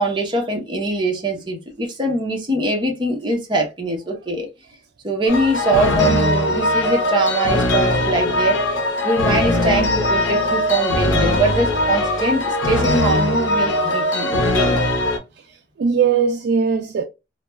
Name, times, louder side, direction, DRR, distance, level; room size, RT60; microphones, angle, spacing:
voice 1, 0.0-4.5 5.0-8.6 9.0-14.8, right 1 dB, 25° right, 0.8 m, -22 dB
sound 1, 5.3-15.2, left 1 dB, 75° left, 0.7 m, -20 dB
voice 2, 15.4-17.0, right 6 dB, 55° right, 0.3 m, -20 dB
2.2 x 2.2 x 3.0 m
head